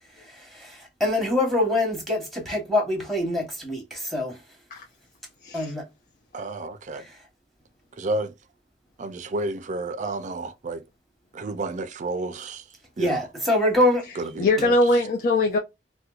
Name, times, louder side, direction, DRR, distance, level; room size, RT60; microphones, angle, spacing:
voice 1, 0.4-4.4 5.5-5.9 13.0-14.0, left 1 dB, ahead, 1.1 m, -24 dB
voice 2, 6.3-7.1 8.0-8.3 9.0-10.8 11.3-12.6 13.0-13.2 14.2-14.7, right 2 dB, 45° right, 0.4 m, -31 dB
voice 3, 14.4-15.6, left 2 dB, 50° left, 0.5 m, -21 dB
4.3 x 2.2 x 2.3 m
head